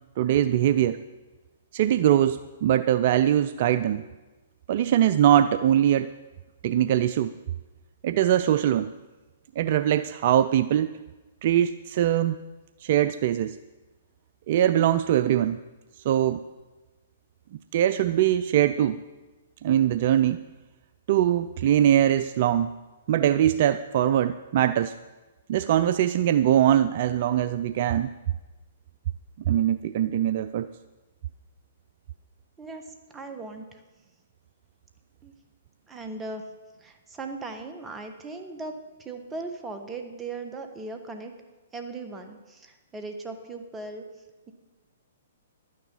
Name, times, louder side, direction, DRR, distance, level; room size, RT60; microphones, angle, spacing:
voice 1, 0.2-1.0 1.7-4.0 4.7-6.1 6.6-7.3 8.0-8.9 9.6-10.9 11.4-12.4 12.8-13.6 14.5-15.6 16.1-16.4 17.7-19.0 19.6-20.4 21.1-22.7 23.1-24.9 25.5-28.1 29.5-30.7, right 11 dB, 50° right, 13 dB, 0.3 m, -22 dB
voice 2, 32.6-33.8 35.2-35.3 35.9-36.5 36.8-38.7 39.0-41.3 41.7-44.0, right 3 dB, 15° right, 5 dB, 1.4 m, -38 dB
12.0 x 9.6 x 5.4 m, 1.2 s
hypercardioid pair, 120°, 0 cm